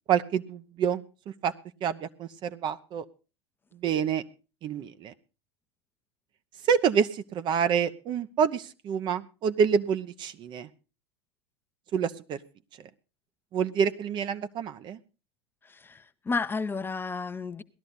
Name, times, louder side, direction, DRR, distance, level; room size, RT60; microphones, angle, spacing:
voice 1, 0.1-1.0 1.4-1.5 1.8-3.0 3.8-4.2 4.6-5.1 6.6-10.7 11.9-12.4 13.5-15.0, right 7 dB, 35° right, 0.8 m, -27 dB
voice 2, 15.6-17.6, left 4 dB, 15° left, 0.7 m, -32 dB
18.0 x 12.5 x 4.0 m
figure-of-eight pair, 80°, 13 cm